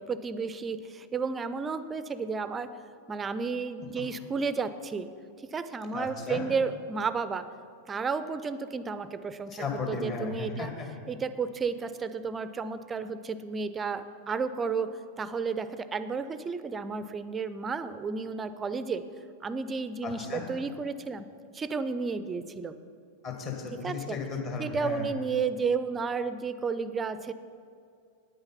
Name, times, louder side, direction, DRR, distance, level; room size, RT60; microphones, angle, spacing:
voice 1, 0.0-2.7 3.1-5.1 5.5-7.5 7.9-10.7 11.1-19.0 19.4-21.2 21.5-22.7 23.8-24.2 24.6-27.3, right 5 dB, 20° right, 13 dB, 0.5 m, -32 dB
voice 2, 5.9-6.4 9.5-10.9 20.0-20.4 23.2-25.1, left 4 dB, 35° left, 1 dB, 2.1 m, -35 dB
9.3 x 8.8 x 5.7 m, 2.3 s
figure-of-eight pair, 90°, 0 cm